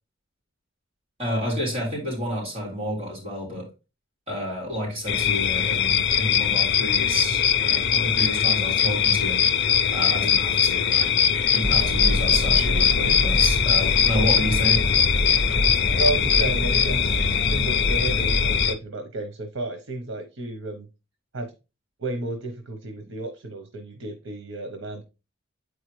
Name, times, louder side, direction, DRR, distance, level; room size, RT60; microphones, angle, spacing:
voice 1, 1.2-3.7 4.3-9.4 9.9-14.8, equal, 30° right, -4 dB, 3.4 m, -30 dB
sound 1, 5.1-18.7, left 8 dB, 60° left, 0.6 m, -21 dB
sound 2, 11.6-18.7, left 1 dB, 40° left, 1.2 m, -26 dB
voice 2, 16.0-17.1 17.5-20.9 21.3-21.5 22.0-25.0, right 2 dB, 90° right, 6 dB, 0.9 m, -32 dB
7.8 x 4.7 x 3.2 m, 0.29 s
head